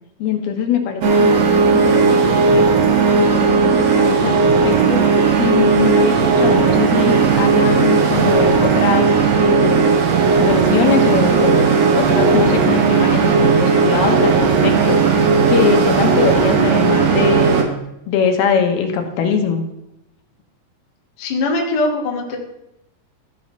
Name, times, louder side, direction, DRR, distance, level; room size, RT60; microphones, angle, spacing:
voice 1, 0.2-2.7 3.2-9.1 9.4-9.9 10.4-15.0 15.5-17.6 18.1-19.6, left 6 dB, 85° left, 4 dB, 3.1 m, -22 dB
sound 1, 1.0-17.6, right 5 dB, 65° right, 1.7 m, -15 dB
voice 2, 21.2-22.4, left 2 dB, 45° left, 0 dB, 1.4 m, -21 dB
14.0 x 4.9 x 5.6 m, 0.86 s
omnidirectional pair, 4.4 m